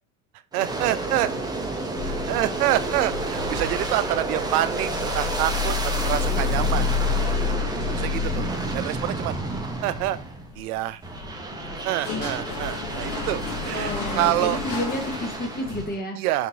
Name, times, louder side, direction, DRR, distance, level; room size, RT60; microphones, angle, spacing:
Aircraft, 0.5-10.6 11.0-16.0, right 3 dB, 10° right, 0.6 m, -31 dB
voice 1, 0.5-1.3 2.0-6.9 7.9-9.4 9.8-10.2 10.6-11.0 11.8-14.6 16.2-16.5, right 14 dB, 80° right, 14 dB, 0.5 m, -27 dB
sound 1, 0.6-8.2, equal, 90° left, 1.0 m, -43 dB
sound 2, 1.9-15.9, left 5 dB, 65° left, 1.6 m, -31 dB
voice 2, 13.7-16.2, equal, 20° left, 3 dB, 1.1 m, -31 dB
3.6 x 3.5 x 2.9 m, 0.38 s
hypercardioid pair, 95°, 45 cm